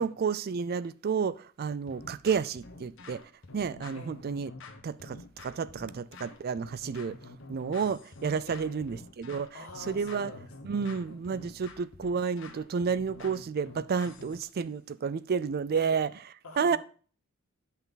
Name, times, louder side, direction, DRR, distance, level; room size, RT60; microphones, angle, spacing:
voice 1, 0.0-3.2 3.5-4.5 4.8-7.2 7.5-9.5 9.9-10.3 10.6-16.1 16.6-16.8, right 6 dB, 45° right, 0.4 m, -31 dB
sound 1, 1.9-14.5, left 3 dB, 60° left, 1.3 m, -48 dB
voice 2, 2.0-2.4 3.9-4.3 8.5-9.1 9.5-11.6 15.7-15.9 16.4-16.8, left 2 dB, 90° left, 2.0 m, -48 dB
9.0 x 5.7 x 3.9 m
head